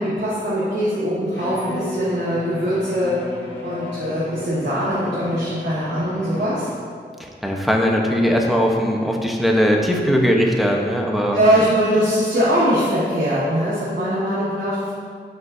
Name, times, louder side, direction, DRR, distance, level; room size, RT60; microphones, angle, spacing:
voice 1, 0.0-3.2 3.6-6.7 11.3-14.9, equal, 70° right, -9 dB, 1.5 m, -21 dB
Bowed string instrument, 1.3-7.0, left 2 dB, 85° left, 1.4 m, -34 dB
voice 2, 7.2-11.4, equal, ahead, 0 dB, 1.0 m, -19 dB
9.5 x 5.3 x 2.7 m, 2.1 s
cardioid pair, 50°, 19 cm